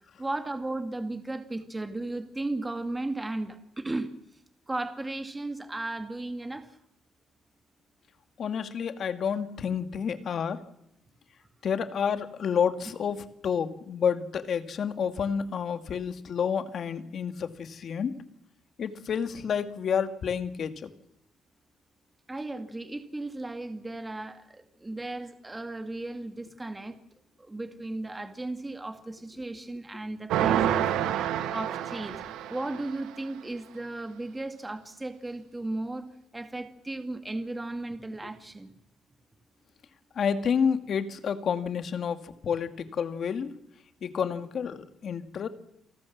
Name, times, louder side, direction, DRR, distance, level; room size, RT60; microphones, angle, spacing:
voice 1, 0.2-4.1 4.7-6.8 22.3-27.0 27.4-31.1 31.5-32.2 32.5-36.1 36.3-38.7, right 2 dB, 15° right, 7 dB, 2.2 m, -35 dB
voice 2, 8.4-10.6 11.6-18.1 18.8-20.9 32.7-32.8 40.2-43.5 44.0-45.5, left 7 dB, 60° left, 9 dB, 2.3 m, -29 dB
sound 1, 30.3-33.0, right 10 dB, 90° right, 1.3 m, -28 dB
29.5 x 18.5 x 7.4 m, 0.79 s
cardioid pair, 90°, 0 cm